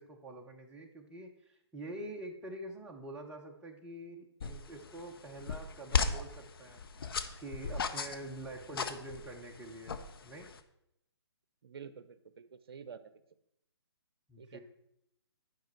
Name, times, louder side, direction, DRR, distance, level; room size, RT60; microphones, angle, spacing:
voice 1, 0.0-6.8 7.4-10.0 10.2-10.5 14.3-14.6, right 1 dB, 5° right, -1 dB, 0.8 m, -46 dB
sound 1, 4.4-10.6, left 5 dB, 55° left, 0.7 m, -37 dB
voice 2, 11.6-13.2 14.4-14.6, right 6 dB, 60° right, 13 dB, 0.7 m, -49 dB
10.5 x 5.2 x 4.5 m, 0.80 s
figure-of-eight pair, 145°, 14 cm